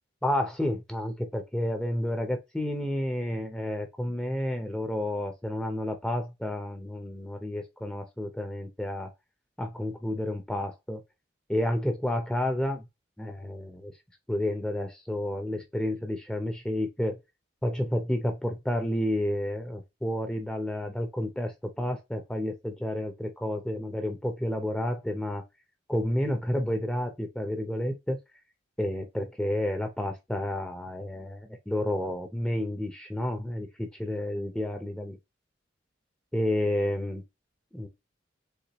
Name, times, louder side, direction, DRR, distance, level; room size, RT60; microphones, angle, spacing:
voice 1, 0.2-9.1 9.6-11.0 11.5-12.9 13.2-13.9 14.3-17.2 17.6-25.4 25.9-28.2 28.8-35.2 36.3-37.2 37.7-37.9, left 1 dB, 5° left, 0.7 m, -30 dB
6.6 x 2.4 x 3.0 m
head